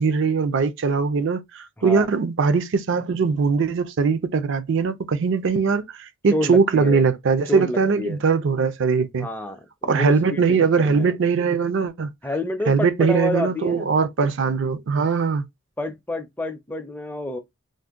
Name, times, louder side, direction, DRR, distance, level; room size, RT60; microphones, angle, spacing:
voice 1, 0.0-9.3 9.8-12.1 12.7-15.4, right 5 dB, 55° right, 0.4 m, -21 dB
voice 2, 1.8-2.1 6.3-7.1 7.5-8.2 9.2-11.1 12.2-13.9 15.8-17.4, left 1 dB, 10° left, 0.4 m, -29 dB
2.6 x 2.1 x 3.5 m
head